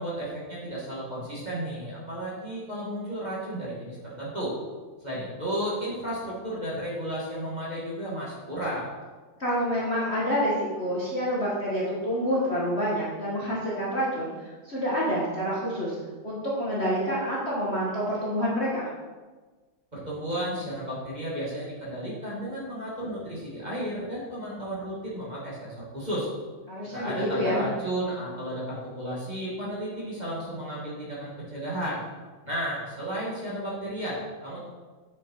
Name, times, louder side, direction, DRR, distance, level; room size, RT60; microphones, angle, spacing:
voice 1, 0.0-4.5 5.0-8.9 19.9-26.3 26.9-32.0 32.4-34.7, right 1 dB, 20° right, -7 dB, 2.4 m, -33 dB
voice 2, 9.4-16.0 16.2-18.9 26.7-27.7, equal, 35° left, -6 dB, 1.8 m, -28 dB
8.0 x 6.8 x 4.8 m, 1.3 s
omnidirectional pair, 2.2 m